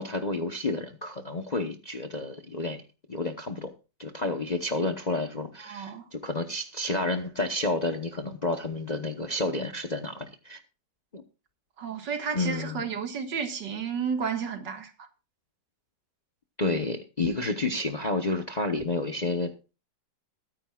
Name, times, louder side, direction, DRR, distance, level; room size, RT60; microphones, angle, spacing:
voice 1, 0.0-2.8 3.1-3.7 4.0-10.6 11.1-11.2 12.3-12.9 16.6-19.5, left 2 dB, 30° left, 0.8 m, -30 dB
voice 2, 5.7-6.1 11.8-15.1, right 6 dB, 70° right, 2.3 m, -32 dB
21.5 x 10.0 x 2.4 m
omnidirectional pair, 2.0 m